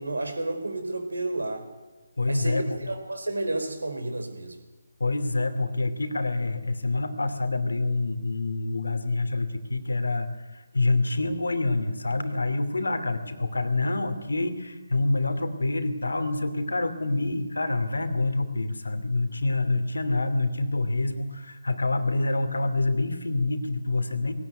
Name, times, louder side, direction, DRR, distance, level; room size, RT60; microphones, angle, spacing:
voice 1, 0.0-1.6 2.3-4.6, right 2 dB, 75° right, 7 dB, 4.7 m, -31 dB
voice 2, 2.2-2.9 5.0-24.3, left 2 dB, 75° left, 10 dB, 2.8 m, -27 dB
19.5 x 18.0 x 9.3 m, 1.1 s
figure-of-eight pair, 150°, 0 cm